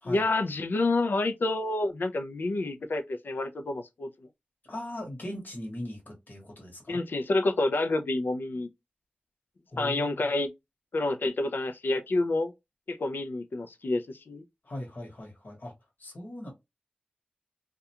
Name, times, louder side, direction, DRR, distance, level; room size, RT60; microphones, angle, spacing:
voice 1, 0.0-4.1 6.9-8.7 9.8-10.5 10.9-12.5 12.9-14.4, left 2 dB, 85° left, 0.4 m, -28 dB
voice 2, 4.7-7.0 9.7-10.1 14.6-15.7 16.0-16.5, left 1 dB, 65° left, 1.1 m, -39 dB
2.3 x 2.2 x 2.7 m
wide cardioid pair, 55°, 3 cm